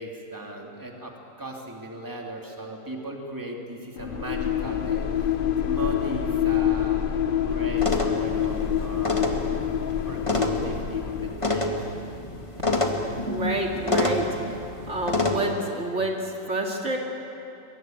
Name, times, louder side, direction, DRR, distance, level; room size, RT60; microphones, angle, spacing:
voice 1, 0.0-7.0 7.4-9.4 10.1-11.8, right 1 dB, 15° right, 0 dB, 2.7 m, -37 dB
sound 1, 4.0-11.8, left 10 dB, 50° left, 0.8 m, -26 dB
sound 2, 7.8-15.4, left 2 dB, 25° left, 2.0 m, -28 dB
voice 2, 13.3-14.5 14.9-17.0, right 1 dB, 60° right, 0 dB, 2.8 m, -28 dB
23.0 x 22.5 x 9.2 m, 2.9 s
omnidirectional pair, 1.4 m